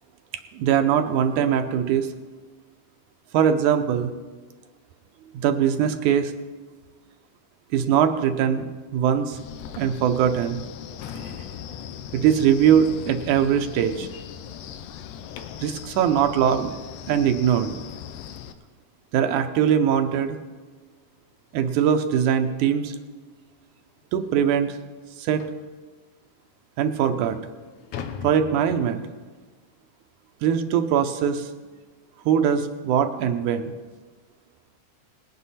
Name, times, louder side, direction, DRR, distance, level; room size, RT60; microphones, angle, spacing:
voice 1, 0.5-2.1 3.3-4.1 5.3-6.3 7.7-8.7 8.9-9.4 9.8-10.6 11.2-11.3 12.1-14.1 15.6-16.7 17.1-17.8 19.1-20.4 21.5-23.0 24.1-24.8 25.2-25.4 26.8-27.4 28.2-29.0 30.4-31.5 32.3-33.7, right 8 dB, 80° right, 7 dB, 2.1 m, -21 dB
Wind, 9.3-18.5, left 9 dB, 90° left, 2.3 m, -39 dB
sound 1, 13.2-15.8 18.6-18.7 19.2-19.4 19.7-19.8 20.3-20.4 21.5-21.6 22.0-22.2 22.8-22.9 23.3-23.4 23.9-24.0 25.4-25.7 26.4-26.5 27.0-29.3, left 7 dB, 75° left, 2.1 m, -42 dB
20.0 x 9.6 x 4.2 m, 1.4 s
omnidirectional pair, 3.6 m